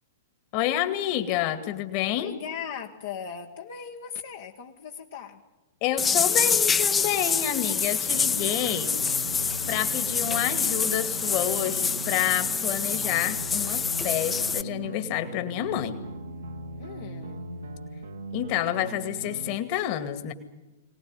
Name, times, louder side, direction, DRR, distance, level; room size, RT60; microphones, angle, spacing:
voice 1, 0.5-2.3 5.8-9.0 9.7-16.0 18.3-20.3, left 12 dB, 45° left, 10 dB, 2.2 m, -28 dB
voice 2, 2.1-5.4 16.8-17.4, left 7 dB, 60° left, 1 dB, 1.6 m, -38 dB
sound 1, 6.0-14.6, left 6 dB, 15° left, 0.9 m, -26 dB
sound 2, 8.1-19.6, right 3 dB, 75° right, 1.5 m, -39 dB
23.5 x 18.5 x 9.2 m, 1.1 s
figure-of-eight pair, 105°, 0 cm